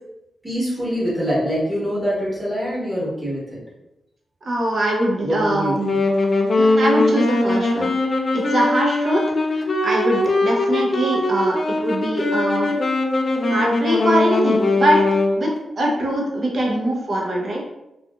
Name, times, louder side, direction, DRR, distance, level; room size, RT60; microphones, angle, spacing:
voice 1, 0.4-3.4 5.2-5.8 12.6-12.8 13.4-13.6 16.6-16.7, equal, 10° right, -7 dB, 1.1 m, -24 dB
voice 2, 4.4-5.9 6.6-7.9 8.3-9.2 9.8-11.6 11.8-12.7 13.5-15.0 15.3-17.6, right 1 dB, 45° right, -2 dB, 0.7 m, -22 dB
Wind instrument woodwind instrument, 5.8-15.4, left 2 dB, 40° left, 0.4 m, -20 dB
2.8 x 2.4 x 2.3 m, 0.92 s
wide cardioid pair, 145°, 0 cm